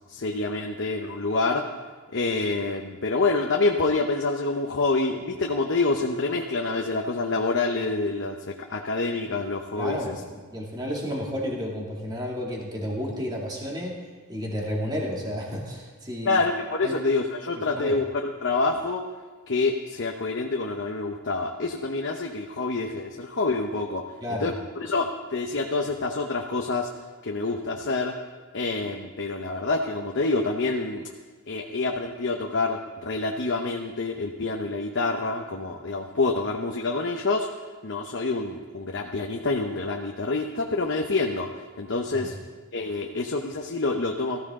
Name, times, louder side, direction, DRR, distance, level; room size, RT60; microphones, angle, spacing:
voice 1, 0.1-1.6 2.1-10.2 16.2-19.0 19.5-24.0 24.3-26.9 27.2-28.2 28.5-31.0 31.5-42.3 42.7-44.4, left 3 dB, 55° left, 1 dB, 0.9 m, -27 dB
voice 2, 9.8-10.1 10.5-14.0 14.3-16.4 16.8-16.9 17.8-17.9 24.2-24.5 42.1-42.3, equal, 20° right, -3 dB, 2.6 m, -31 dB
19.0 x 14.5 x 3.8 m, 1.4 s
head